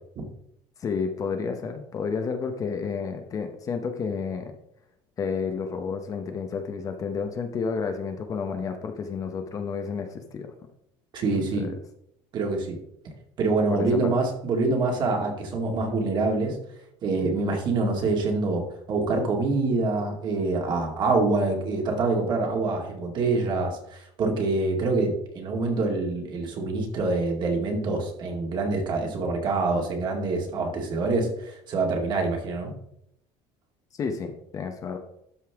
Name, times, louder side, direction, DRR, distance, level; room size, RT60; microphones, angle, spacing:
voice 1, 0.8-4.6 5.2-10.5 11.3-11.7 13.7-14.1 33.9-35.0, left 5 dB, 30° left, 6 dB, 0.9 m, -31 dB
voice 2, 11.1-11.7 12.3-12.8 13.4-16.6 17.0-32.7, right 3 dB, 40° right, 2 dB, 2.2 m, -26 dB
12.5 x 5.5 x 3.6 m, 0.76 s
cardioid pair, 155°, 11 cm